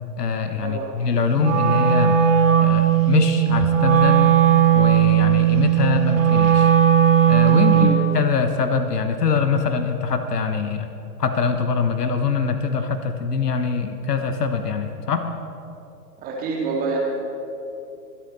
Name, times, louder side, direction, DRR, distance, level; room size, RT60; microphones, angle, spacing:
voice 1, 0.2-2.2 2.6-4.3 4.7-6.7 7.3-10.9 11.2-15.3, left 5 dB, 70° left, 8 dB, 1.2 m, -23 dB
Wind instrument woodwind instrument, 1.3-8.1, right 10 dB, 50° right, 1.8 m, -17 dB
voice 2, 16.2-17.0, right 3 dB, 20° right, -2 dB, 2.3 m, -27 dB
24.0 x 8.7 x 4.0 m, 2.7 s
figure-of-eight pair, 125°, 49 cm